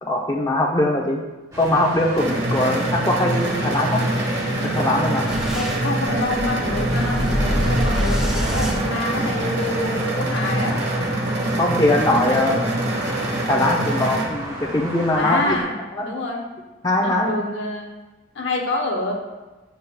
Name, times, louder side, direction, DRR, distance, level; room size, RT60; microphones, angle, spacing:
voice 1, 0.0-1.2 1.6-4.0 4.7-5.3 11.6-12.6 13.5-15.6 16.0-16.1 16.8-17.3, left 1 dB, 20° left, 0 dB, 0.5 m, -21 dB
sound 1, 1.5-15.6, equal, 20° right, 1.4 m, -34 dB
sound 2, 2.2-14.2, right 1 dB, 65° right, 1.3 m, -24 dB
Boom, 5.3-9.7, equal, 5° right, 1.1 m, -26 dB
voice 2, 5.5-10.8 12.0-12.6 15.2-15.7 16.0-16.4 17.0-17.9 18.3-19.1, left 2 dB, 90° left, 1 dB, 0.9 m, -27 dB
8.3 x 5.3 x 2.2 m, 1.2 s
head